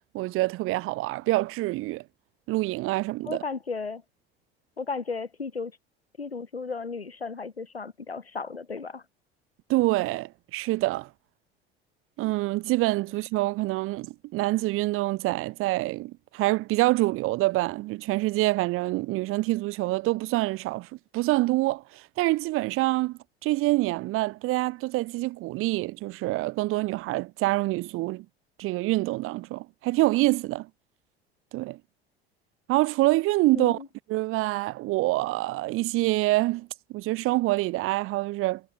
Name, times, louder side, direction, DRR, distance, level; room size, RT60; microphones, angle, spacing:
voice 1, 0.1-2.0 2.5-3.4 9.7-11.1 12.2-20.9 21.1-28.2 28.6-30.7 31.5-31.8 32.7-33.8 34.1-36.7 36.9-38.6, right 19 dB, 45° right, 1.0 m, -26 dB
voice 2, 3.2-4.0 4.8-5.7 6.2-9.0 33.5-33.9, left 4 dB, 85° left, 1.8 m, -34 dB
figure-of-eight pair, 65°, 30 cm